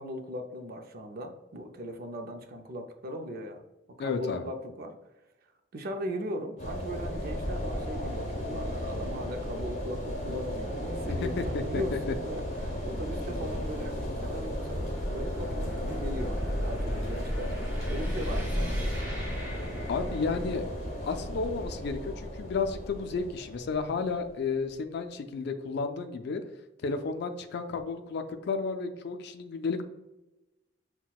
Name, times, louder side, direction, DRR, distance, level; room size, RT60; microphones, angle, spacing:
voice 1, 0.0-3.6 4.0-4.9 5.7-17.6 17.9-19.0, equal, 55° right, 5 dB, 0.5 m, -38 dB
voice 2, 4.0-4.5 11.1-11.8 19.9-20.6 21.0-26.4 26.8-29.8, left 4 dB, 60° left, 7 dB, 0.4 m, -32 dB
sound 1, 6.6-24.5, equal, 40° left, 1.0 m, -35 dB
sound 2, 11.5-20.5, equal, 10° right, 1.4 m, -37 dB
5.7 x 2.2 x 2.3 m, 0.99 s
head